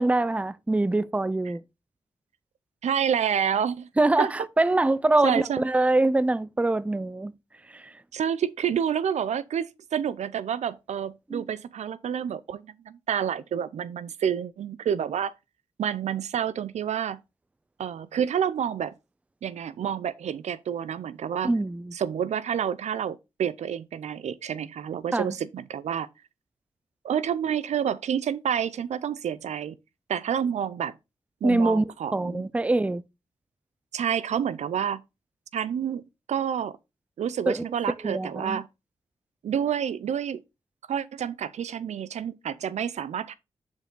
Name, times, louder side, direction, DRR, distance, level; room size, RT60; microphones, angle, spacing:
voice 1, 0.0-1.6 4.0-7.3 7.7-7.9 11.3-11.4 21.4-21.9 25.1-25.3 31.4-33.0 37.5-37.7 38.0-38.6, right 2 dB, 10° right, 0.4 m, -24 dB
voice 2, 2.8-3.9 4.2-4.3 5.2-5.6 8.1-15.3 15.8-17.2 17.8-18.9 19.4-21.5 21.9-26.1 27.0-29.8 30.1-30.9 31.4-32.4 33.9-35.0 35.5-36.0 36.3-36.8 37.2-38.7 39.4-40.4 40.9-43.3, right 8 dB, 85° right, 0.4 m, -28 dB
5.6 x 4.6 x 3.7 m
cardioid pair, 60°, 11 cm